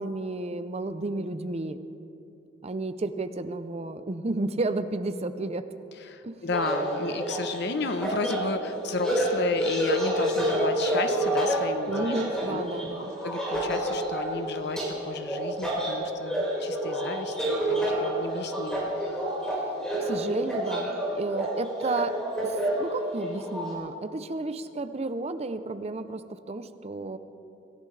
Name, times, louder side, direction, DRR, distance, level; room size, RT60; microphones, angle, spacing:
voice 1, 0.0-1.8 2.6-5.6 6.2-6.5 11.9-13.1 20.0-22.1 22.4-26.2 26.5-27.2, right 2 dB, 35° right, 11 dB, 0.6 m, -32 dB
voice 2, 6.1-12.1 12.5-12.6 13.2-17.3 17.7-18.9, left 3 dB, 60° left, 9 dB, 0.9 m, -33 dB
sound 1, 6.5-23.7, right 1 dB, 5° left, 5.0 m, -29 dB
26.0 x 15.5 x 3.3 m, 2.7 s
head